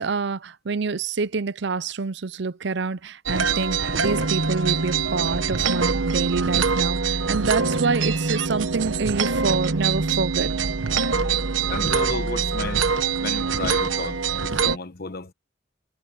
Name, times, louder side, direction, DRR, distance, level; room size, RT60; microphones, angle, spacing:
voice 1, 0.0-10.5, right 4 dB, 65° right, 0.6 m, -27 dB
sound 1, 3.3-14.8, right 5 dB, 90° right, 1.1 m, -24 dB
voice 2, 11.7-12.9 13.2-15.3, left 3 dB, 55° left, 1.1 m, -33 dB
head